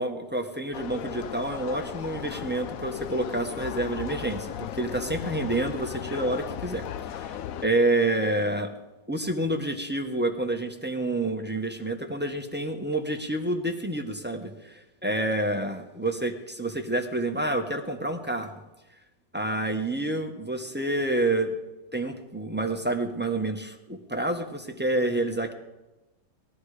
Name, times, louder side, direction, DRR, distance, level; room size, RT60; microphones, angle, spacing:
voice 1, 0.0-7.4 7.6-8.7 9.1-18.5 19.3-21.6 21.9-25.5, right 2 dB, 5° right, 4 dB, 1.1 m, -28 dB
sound 1, 0.7-7.7, left 9 dB, 65° left, 0.9 m, -36 dB
20.0 x 13.5 x 5.0 m, 1.0 s
omnidirectional pair, 1.9 m